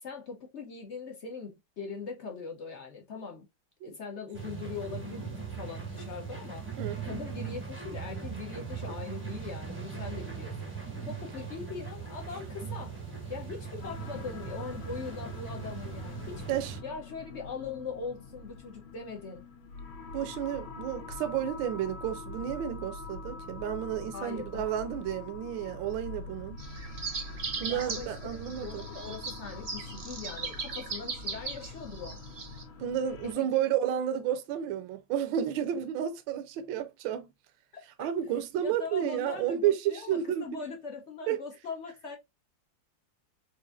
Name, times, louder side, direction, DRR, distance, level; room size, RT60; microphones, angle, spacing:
voice 1, 0.0-3.5 3.8-6.8 7.0-10.5 11.0-12.9 13.3-19.4 24.1-24.6 27.7-32.2 33.2-33.5 38.0-38.1 38.6-42.2, left 5 dB, 70° left, 0.6 m, -41 dB
sound 1, 4.3-16.8, right 6 dB, 20° right, 0.3 m, -39 dB
voice 2, 6.8-7.2 16.5-16.7 20.1-26.6 27.6-28.8 32.8-37.3 38.0-40.6 41.3-41.4, right 10 dB, 75° right, 1.3 m, -31 dB
sound 2, 13.8-33.4, left 4 dB, 90° left, 1.8 m, -44 dB
sound 3, 26.6-32.6, right 4 dB, 55° right, 0.7 m, -39 dB
4.7 x 2.5 x 2.4 m
omnidirectional pair, 2.3 m